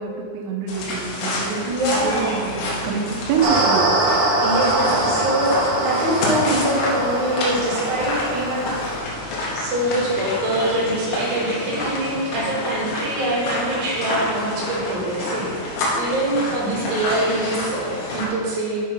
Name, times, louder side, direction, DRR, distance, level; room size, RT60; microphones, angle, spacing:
voice 1, 0.0-3.9, right 6 dB, 85° right, 1 dB, 3.4 m, -26 dB
sound 1, 0.7-18.3, left 1 dB, 70° left, 3.4 m, -28 dB
voice 2, 1.6-2.4 4.4-8.7 9.5-15.5 15.9-18.8, right 1 dB, 45° right, -7 dB, 3.1 m, -24 dB
sound 2, 3.4-9.0, right 2 dB, 70° right, 3.2 m, -23 dB
8.4 x 5.3 x 5.5 m, 2.1 s
omnidirectional pair, 5.9 m